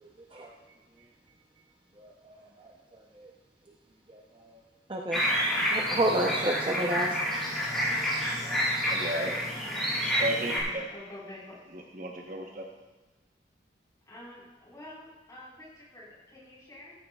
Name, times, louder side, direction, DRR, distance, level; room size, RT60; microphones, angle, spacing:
voice 1, 0.0-0.5 2.0-2.4 2.6-2.7 3.2-3.3 4.1-4.6 4.9-7.2, right 1 dB, 30° right, 0 dB, 0.7 m, -31 dB
sound 1, 5.1-10.6, equal, ahead, 4.3 m, -29 dB
voice 2, 8.9-9.5 10.0-10.9 11.7-12.7, right 1 dB, 45° right, 1 dB, 1.1 m, -34 dB
voice 3, 9.6-10.1 10.9-11.5 14.1-16.9, left 1 dB, 20° left, -7 dB, 4.5 m, -48 dB
14.5 x 14.0 x 2.4 m, 1.2 s
head